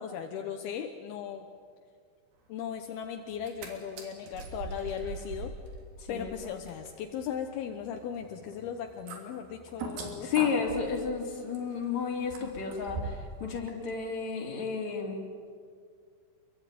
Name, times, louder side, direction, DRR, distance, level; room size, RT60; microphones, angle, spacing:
voice 1, 0.0-1.5 2.5-5.5 6.1-10.3, left 8 dB, 80° left, 4 dB, 3.0 m, -37 dB
sound 1, 3.3-3.7 4.0-13.3 13.7-13.8, right 3 dB, 85° right, 5.1 m, -42 dB
voice 2, 10.2-15.2, left 6 dB, 50° left, 0 dB, 4.5 m, -32 dB
26.0 x 23.5 x 9.3 m, 2.1 s
omnidirectional pair, 4.4 m